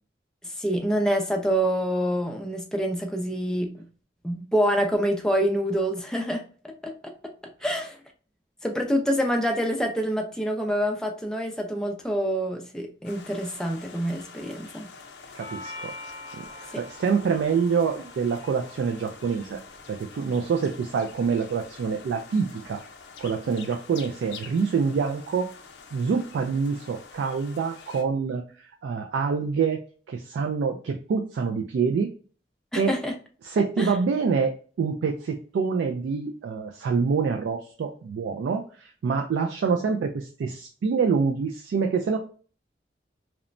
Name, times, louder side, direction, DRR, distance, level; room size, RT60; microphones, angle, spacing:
voice 1, 0.4-3.9 4.2-7.1 7.6-8.0 8.6-14.9 16.7-16.8 32.7-33.1 33.8-33.9, equal, 5° left, 2 dB, 0.4 m, -26 dB
sound 1, 13.0-28.0, left 5 dB, 75° left, 0.5 m, -46 dB
voice 2, 15.3-15.9 16.3-19.6 19.9-22.8 23.2-25.5 25.9-29.8 30.1-32.1 32.8-32.9 33.4-42.2, right 5 dB, 90° right, 4 dB, 0.3 m, -26 dB
Doorbell, 15.4-23.4, left 2 dB, 35° right, 0.7 m, -47 dB
2.9 x 2.1 x 2.5 m, 0.40 s
head